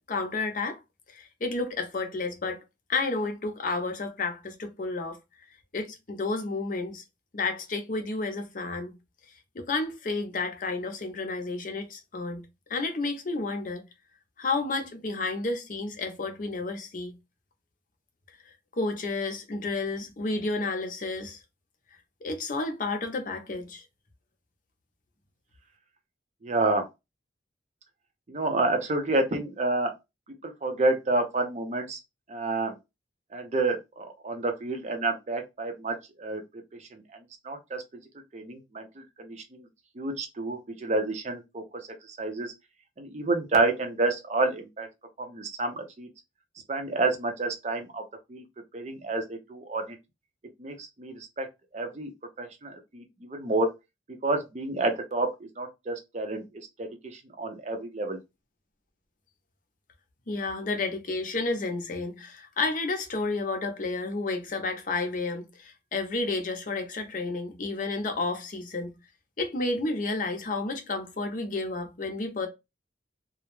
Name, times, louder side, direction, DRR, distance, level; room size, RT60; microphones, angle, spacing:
voice 1, 0.1-0.8 1.1-2.6 2.9-5.2 5.7-7.0 7.3-9.0 9.5-13.8 14.4-17.1 18.7-21.4 22.2-23.8 60.3-69.0 69.4-72.5, left 3 dB, 45° left, 0.6 m, -31 dB
voice 2, 26.4-26.8 28.3-29.9 30.4-32.0 32.3-32.7 33.3-36.4 36.9-37.0 37.4-37.8 38.3-39.7 40.0-41.6 42.2-42.5 43.0-44.9 45.2-46.1 46.7-48.0 48.3-48.4 48.7-50.0 50.6-51.5 51.7-52.1 52.4-53.7 54.2-55.3 55.6-56.4 56.8-56.9 57.4-58.2, right 2 dB, 35° right, 0.5 m, -29 dB
2.2 x 2.0 x 3.0 m
head